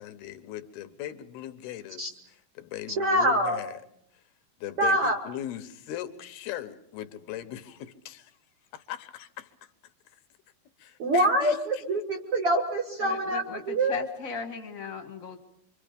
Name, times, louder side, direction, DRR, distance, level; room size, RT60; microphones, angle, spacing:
voice 1, 0.0-2.1 2.6-3.8 4.6-8.3 8.7-9.5 10.8-11.8, left 11 dB, 80° left, 3.0 m, -39 dB
voice 2, 3.0-3.6 4.8-5.2 11.0-13.9, right 1 dB, 55° right, 1.7 m, -25 dB
voice 3, 13.0-15.4, left 5 dB, 35° left, 1.3 m, -37 dB
26.0 x 25.5 x 5.2 m
omnidirectional pair, 4.4 m